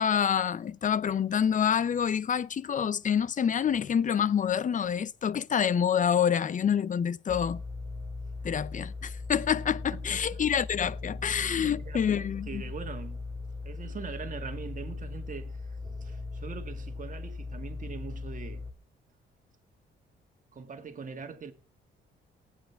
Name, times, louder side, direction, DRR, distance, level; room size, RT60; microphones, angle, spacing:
voice 1, 0.0-7.6 8.4-12.6, left 8 dB, 40° left, 0.6 m, -27 dB
sound 1, 7.3-18.7, left 3 dB, 10° right, 2.1 m, -39 dB
voice 2, 9.9-10.4 11.6-13.2 13.6-18.6 20.5-21.5, right 5 dB, 40° right, 2.0 m, -42 dB
18.5 x 9.1 x 3.5 m
cardioid pair, 90°, 20 cm